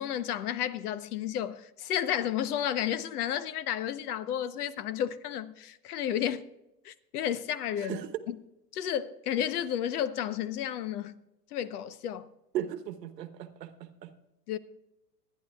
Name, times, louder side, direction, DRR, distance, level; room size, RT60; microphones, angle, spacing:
voice 1, 0.0-6.5 6.8-8.0 8.3-8.4 8.7-11.1 11.5-12.3 14.5-14.6, left 10 dB, 65° left, 1.0 m, -32 dB
voice 2, 7.8-8.1 12.5-14.1, right 11 dB, 85° right, 1.3 m, -37 dB
25.0 x 10.0 x 2.4 m
hypercardioid pair, 135°, 48 cm